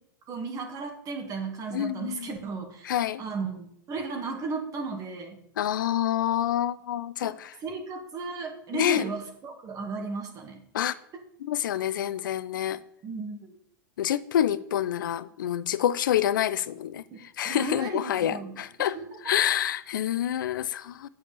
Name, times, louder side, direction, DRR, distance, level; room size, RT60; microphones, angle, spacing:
voice 1, 0.3-2.9 3.2-5.4 7.2-7.3 7.6-10.9 13.0-13.6 17.5-19.2, right 4 dB, 35° right, 2.1 m, -35 dB
voice 2, 1.7-2.3 2.8-3.2 5.6-7.6 8.7-9.0 10.7-10.9 11.4-12.8 14.0-19.0 19.2-21.1, left 11 dB, 75° left, 0.7 m, -27 dB
8.4 x 6.6 x 6.9 m
hypercardioid pair, 105°, 11 cm